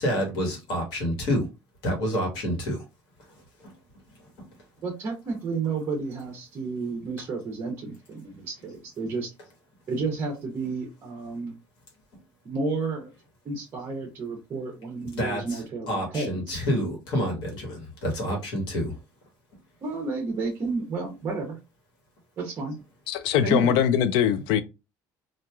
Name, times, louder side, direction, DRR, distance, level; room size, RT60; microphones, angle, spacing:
voice 1, 0.0-1.5 1.8-2.8 15.2-15.6 15.9-18.9, equal, 65° left, 1.3 m, -28 dB
voice 2, 4.8-9.3 9.9-11.5 12.4-13.1 13.4-16.6 19.8-21.6 22.4-22.8 23.4-23.8, right 4 dB, 30° right, 0.7 m, -31 dB
voice 3, 23.1-24.6, left 9 dB, 80° left, 0.4 m, -22 dB
2.9 x 2.4 x 2.3 m
cardioid pair, 160°, 8 cm